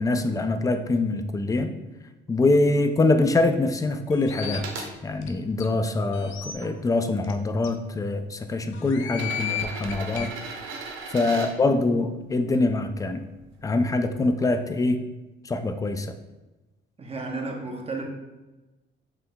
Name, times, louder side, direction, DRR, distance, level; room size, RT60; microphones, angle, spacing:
voice 1, 0.0-1.7 2.3-10.3 11.1-13.3 13.6-15.0 15.4-16.1, left 2 dB, 15° left, 8 dB, 0.3 m, -24 dB
sound 1, 4.1-4.6 5.2-5.3 5.6-5.7 6.1-6.5 7.2-7.3 7.6-7.7 8.7-10.3, left 10 dB, 90° left, 0.4 m, -34 dB
sound 2, 4.3-4.9 5.6-6.7 7.7-7.8 9.1-11.5 13.4-13.5, right 4 dB, 90° right, 0.7 m, -37 dB
voice 2, 17.0-18.0, right 3 dB, 30° right, 1 dB, 0.8 m, -34 dB
5.7 x 3.1 x 2.2 m, 1.1 s
cardioid pair, 90°, 20 cm